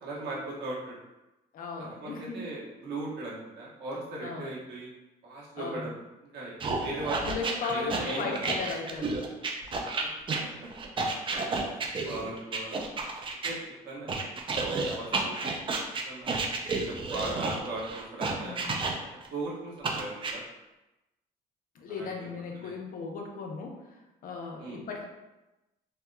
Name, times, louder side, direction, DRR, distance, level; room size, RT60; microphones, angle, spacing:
voice 1, 0.0-0.9 1.8-4.9 5.2-6.0 6.3-7.2 7.4-8.4 9.7-9.9 11.7-12.8 13.4-13.6 13.8-14.3 14.7-16.4 16.7-18.6 19.1-20.4 21.9-22.2 22.5-22.7 24.6-24.8, right 2 dB, 75° right, -4 dB, 1.1 m, -38 dB
voice 2, 1.5-2.4 4.2-4.5 5.6-5.9 7.2-9.2 18.4-18.7 21.8-23.8 24.2-25.0, left 4 dB, 55° left, 2 dB, 0.6 m, -36 dB
sound 1, 6.6-13.5 14.1-19.3 19.8-20.3, right 3 dB, 30° right, 0.4 m, -31 dB
4.4 x 2.2 x 2.3 m, 0.99 s
cardioid pair, 110°, 17 cm